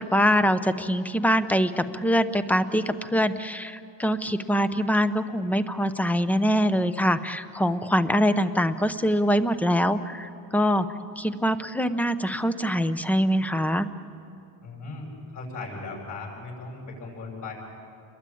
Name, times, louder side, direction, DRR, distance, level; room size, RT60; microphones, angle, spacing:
voice 1, 0.0-10.9 11.2-13.9, equal, 5° left, 11 dB, 0.7 m, -24 dB
voice 2, 14.6-17.5, left 3 dB, 50° left, 0 dB, 7.9 m, -37 dB
30.0 x 21.5 x 8.6 m, 2.5 s
cardioid pair, 155°, 38 cm